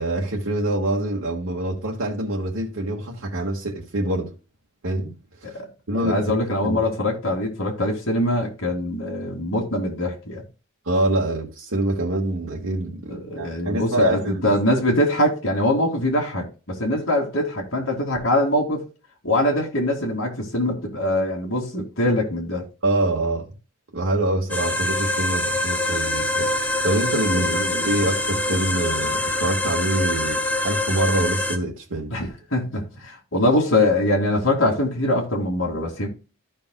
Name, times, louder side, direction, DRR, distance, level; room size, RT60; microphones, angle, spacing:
voice 1, 0.0-4.3 4.8-5.6 5.9-6.3 6.6-6.8 10.8-14.4 22.8-23.5 23.9-26.5 26.8-32.1, right 1 dB, 85° right, 1.7 m, -25 dB
voice 2, 5.9-10.4 13.1-18.8 19.2-22.6 27.3-27.9 32.1-36.1, left 1 dB, 65° left, 2.4 m, -23 dB
sound 1, 24.5-31.6, left 1 dB, 5° left, 0.6 m, -24 dB
14.5 x 5.3 x 2.2 m
head